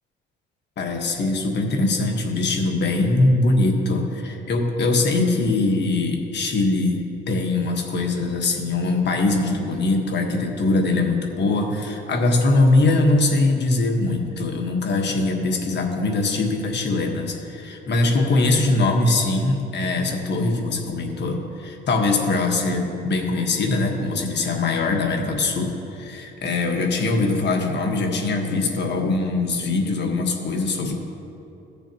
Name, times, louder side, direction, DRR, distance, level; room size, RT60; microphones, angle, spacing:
voice 1, 0.8-30.9, left 2 dB, 60° left, 2 dB, 1.5 m, -22 dB
17.5 x 6.9 x 3.0 m, 2.8 s
cardioid pair, 90°, 20 cm